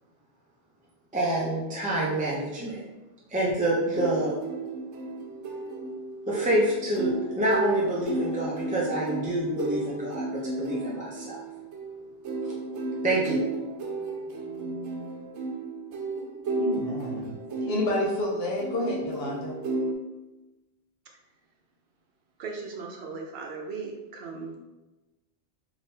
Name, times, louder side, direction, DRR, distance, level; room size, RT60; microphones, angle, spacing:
voice 1, 1.1-2.8 3.3-4.3 6.3-11.4 13.0-13.4 14.5-15.1, right 1 dB, 10° right, -6 dB, 0.4 m, -27 dB
sound 1, 3.9-19.9, right 2 dB, 85° right, 0.9 m, -33 dB
voice 2, 16.6-17.3 17.7-19.6, left 1 dB, 65° left, -3 dB, 0.8 m, -29 dB
voice 3, 22.4-24.6, right 4 dB, 60° right, 1 dB, 0.8 m, -38 dB
3.5 x 2.7 x 2.7 m, 1.1 s
omnidirectional pair, 1.2 m